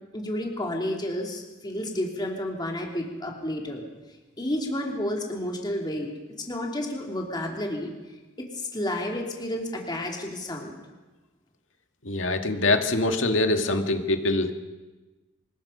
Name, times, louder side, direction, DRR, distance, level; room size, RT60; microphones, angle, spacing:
voice 1, 0.1-3.8 4.4-6.1 6.4-7.9 8.4-10.8, left 1 dB, 20° left, 0 dB, 3.0 m, -31 dB
voice 2, 12.0-14.5, left 2 dB, 85° left, 5 dB, 2.0 m, -24 dB
25.0 x 21.0 x 5.7 m, 1.2 s
head